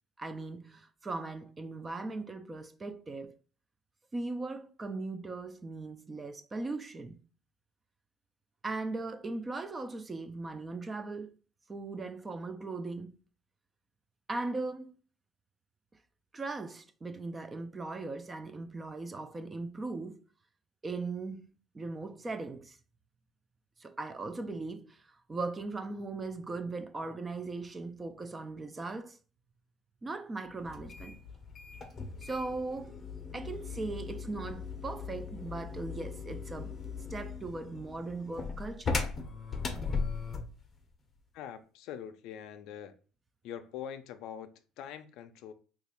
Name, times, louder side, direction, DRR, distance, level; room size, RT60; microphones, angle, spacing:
voice 1, 0.2-3.4 4.1-7.2 8.6-11.3 11.7-13.2 14.3-14.9 16.3-20.2 20.8-21.5 21.7-22.8 23.8-29.2 30.0-31.2 32.2-33.0 33.3-36.7 37.1-39.0, right 3 dB, 20° right, 0.3 m, -39 dB
sound 1, 30.7-40.6, left 4 dB, 30° left, 0.6 m, -38 dB
voice 2, 41.3-42.9 43.4-45.5, left 9 dB, 70° left, 0.4 m, -44 dB
2.9 x 2.3 x 4.2 m
cardioid pair, 125°, 0 cm